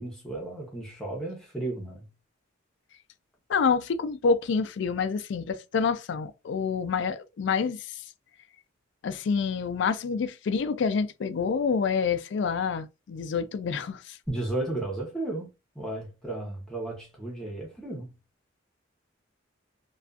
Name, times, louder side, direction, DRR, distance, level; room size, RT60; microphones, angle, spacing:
voice 1, 0.0-2.1 14.3-18.1, right 2 dB, 5° left, 0.7 m, -34 dB
voice 2, 3.5-8.0 9.0-14.2, left 5 dB, 60° left, 0.3 m, -27 dB
2.5 x 2.3 x 2.3 m
head